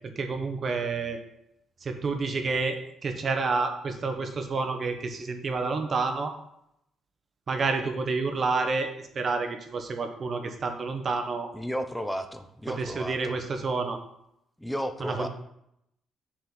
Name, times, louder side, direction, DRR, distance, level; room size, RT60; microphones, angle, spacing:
voice 1, 0.2-1.2 1.8-6.3 7.5-8.9 9.1-11.5 12.7-14.0 15.0-15.3, right 4 dB, 45° right, 6 dB, 1.3 m, -29 dB
voice 2, 11.5-13.4 14.6-15.3, equal, 5° left, 8 dB, 1.0 m, -33 dB
7.5 x 4.6 x 7.1 m, 0.77 s
cardioid pair, 90°, 0 cm